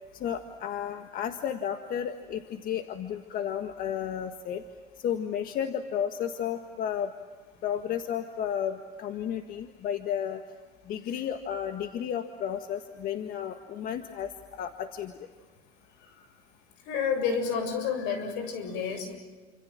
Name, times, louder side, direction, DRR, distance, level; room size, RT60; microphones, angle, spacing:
voice 1, 0.1-4.6 5.0-7.1 7.6-10.4 10.9-15.1, left 9 dB, 55° left, 7 dB, 1.7 m, -33 dB
voice 2, 16.9-19.2, left 6 dB, 80° left, 9 dB, 7.2 m, -30 dB
29.0 x 27.0 x 7.5 m, 1.4 s
cardioid pair, 135°, 18 cm